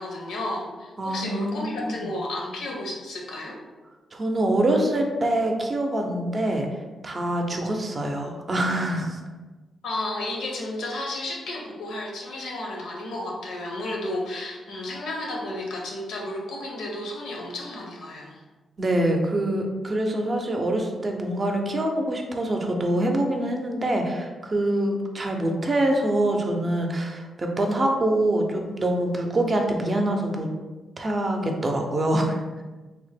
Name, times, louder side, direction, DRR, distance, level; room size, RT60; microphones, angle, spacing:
voice 1, 0.0-3.6 9.8-18.4, left 1 dB, 85° left, -1 dB, 0.7 m, -32 dB
voice 2, 1.0-2.1 4.1-6.7 7.0-9.2 18.8-30.5 31.0-32.4, right 1 dB, 40° right, 2 dB, 0.5 m, -25 dB
2.9 x 2.0 x 3.3 m, 1.2 s
cardioid pair, 65°, 0 cm